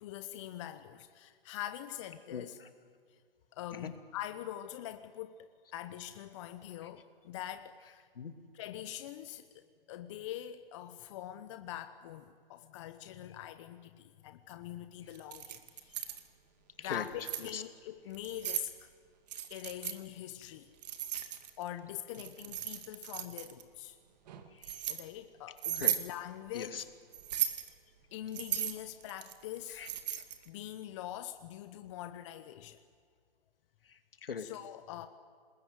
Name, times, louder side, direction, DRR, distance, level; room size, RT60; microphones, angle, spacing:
voice 1, 0.0-2.6 3.1-3.2 3.5-8.1 8.5-16.0 16.8-18.9 19.5-20.7 21.6-24.0 24.9-26.9 28.1-29.9 30.5-32.8 34.4-35.1, left 12 dB, 30° left, 10 dB, 1.0 m, -44 dB
voice 2, 2.3-2.7 3.7-3.9 8.2-8.3 16.8-17.0 17.4-17.6 24.5-24.8 25.7-25.9 26.5-26.8 29.8-30.2 33.9-34.5, left 6 dB, 70° left, 9 dB, 2.6 m, -41 dB
Keys jangling, 15.1-16.2 16.9-17.5 18.1-18.7 19.3-20.0 20.8-21.7 22.1-23.6 24.3-25.0 25.6-26.1 27.1-27.7 28.3-30.5, right 10 dB, 45° right, 2.2 m, -36 dB
26.0 x 20.5 x 9.5 m, 2.1 s
hypercardioid pair, 140°, 29 cm